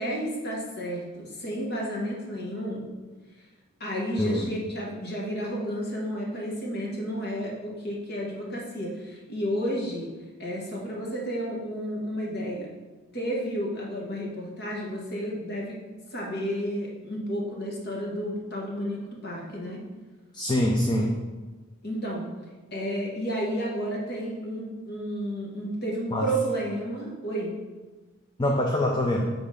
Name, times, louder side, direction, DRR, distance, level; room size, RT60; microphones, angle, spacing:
voice 1, 0.0-2.9 3.8-10.1 10.4-12.7 13.1-15.8 16.1-19.8 21.8-22.3 22.7-27.5, equal, 50° left, -2 dB, 1.5 m, -31 dB
voice 2, 4.2-4.5 20.3-21.2 26.1-26.3 28.4-29.3, left 1 dB, 20° left, 0 dB, 0.5 m, -24 dB
7.6 x 3.5 x 5.0 m, 1.3 s
head